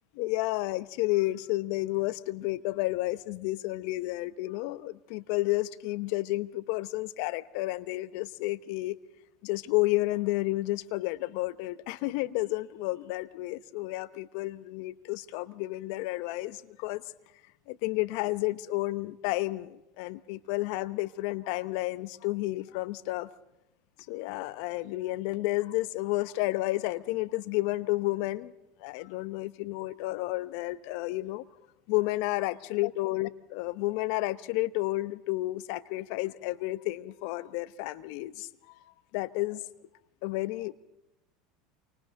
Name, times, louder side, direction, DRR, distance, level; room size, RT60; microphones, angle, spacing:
voice 1, 0.2-9.0 9.4-17.0 17.7-23.3 24.1-28.5 28.8-31.4 31.9-38.8 39.1-39.7 40.2-40.7, left 19 dB, 65° left, 0.9 m, -31 dB
28.5 x 25.0 x 3.8 m
hypercardioid pair, 85°, 0 cm